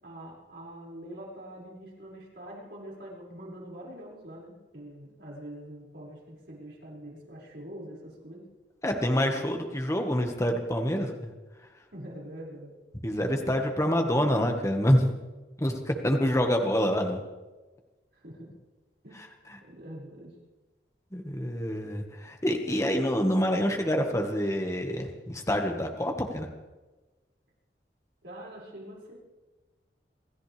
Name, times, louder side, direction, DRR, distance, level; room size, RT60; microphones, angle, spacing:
voice 1, 0.0-8.5 9.2-9.5 11.9-12.7 13.3-13.6 18.1-18.5 19.0-19.2 19.6-20.3 28.2-29.2, right 1 dB, 65° right, -4 dB, 5.9 m, -44 dB
voice 2, 8.8-11.3 13.0-15.2 15.6-17.2 21.1-26.5, equal, 15° left, 3 dB, 1.6 m, -27 dB
27.0 x 14.0 x 3.5 m, 1.2 s
head